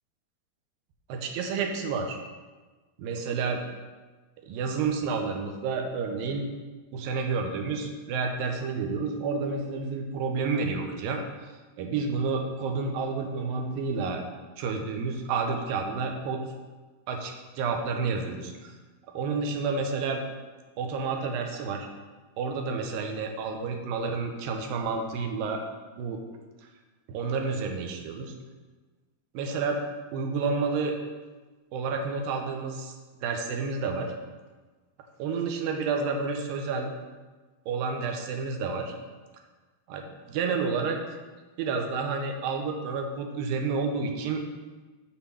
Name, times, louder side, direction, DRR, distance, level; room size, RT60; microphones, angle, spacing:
voice 1, 1.1-2.2 3.0-3.6 4.4-6.5 6.9-11.2 11.8-14.2 14.6-16.4 17.1-18.7 19.1-20.2 20.8-21.9 22.4-25.6 26.0-26.2 27.1-28.3 29.3-29.8 30.1-31.0 31.7-32.9 33.2-34.1 35.2-36.9 37.7-38.9 39.9-41.0 41.6-44.4, right 4 dB, 80° right, 3 dB, 2.4 m, -30 dB
7.5 x 4.4 x 6.9 m, 1.3 s
omnidirectional pair, 4.3 m